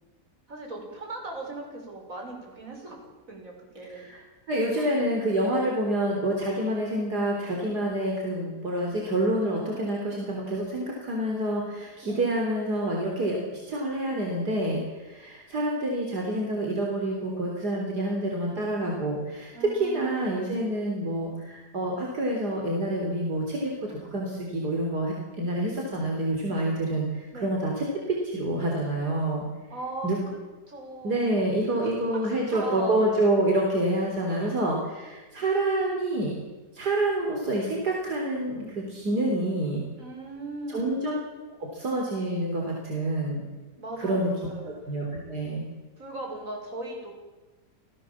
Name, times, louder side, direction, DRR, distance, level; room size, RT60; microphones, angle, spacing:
voice 1, 0.5-3.0 3.3-4.1 4.7-5.0 12.0-12.3 19.5-20.5 27.3-27.5 29.7-30.1 30.7-31.4 31.8-33.0 34.3-34.7 40.0-41.0 43.8-44.7 46.0-47.1, right 2 dB, 50° right, 0 dB, 6.6 m, -38 dB
voice 2, 3.9-4.2 4.5-29.5 30.0-30.2 31.0-36.3 36.7-39.8 40.7-41.2 41.6-43.4 44.0-44.3 44.9-45.6, right 1 dB, 70° right, -1 dB, 4.3 m, -27 dB
28.0 x 18.0 x 7.4 m, 1.2 s
omnidirectional pair, 1.8 m